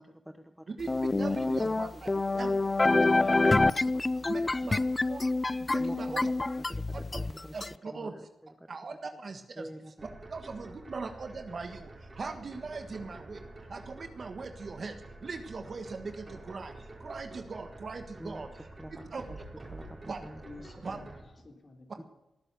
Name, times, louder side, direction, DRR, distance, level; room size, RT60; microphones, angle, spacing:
voice 1, 0.0-0.7 1.6-1.7 3.2-3.6 3.9-4.9 5.8-6.2 6.7-8.3 8.6-8.7 9.6-9.9 18.2-18.5 18.8-18.9 19.3-19.4 19.7-20.4 20.9-21.1 22.0-22.1, equal, 5° right, 8 dB, 1.1 m, -46 dB
voice 2, 0.7-2.6 3.4-3.5 4.3-4.8 5.1-5.2 5.6-6.3 6.9-7.0 7.5-8.1 8.7-9.7 10.3-13.4 13.7-19.2 20.1-20.2 20.8-21.0, right 4 dB, 55° right, 7 dB, 1.5 m, -40 dB
sound 1, 0.9-7.7, left 2 dB, 30° left, 0.5 m, -27 dB
sound 2, 10.0-21.2, right 2 dB, 35° right, 4.4 m, -48 dB
voice 3, 20.4-22.0, left 3 dB, 45° left, 3 dB, 3.7 m, -51 dB
18.5 x 10.0 x 6.9 m, 0.92 s
cardioid pair, 55°, 0 cm